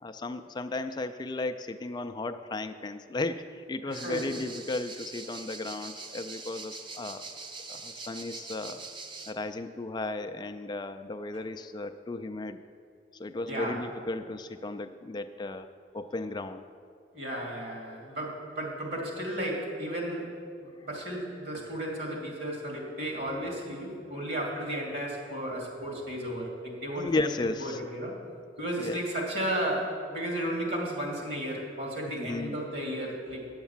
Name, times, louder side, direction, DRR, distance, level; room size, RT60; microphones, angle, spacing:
voice 1, 0.0-7.2 7.7-8.8 9.3-12.6 13.2-15.7 15.9-16.6 27.0-27.8 28.8-29.0 32.1-32.7, left 2 dB, 25° left, 9 dB, 0.3 m, -34 dB
sound 1, 3.9-9.3, right 3 dB, 30° right, 0.7 m, -43 dB
voice 2, 3.9-4.2 13.5-13.8 17.1-20.3 20.6-27.3 27.6-28.1 28.6-33.4, right 1 dB, 65° right, -1 dB, 2.6 m, -34 dB
9.5 x 8.1 x 7.1 m, 2.4 s
head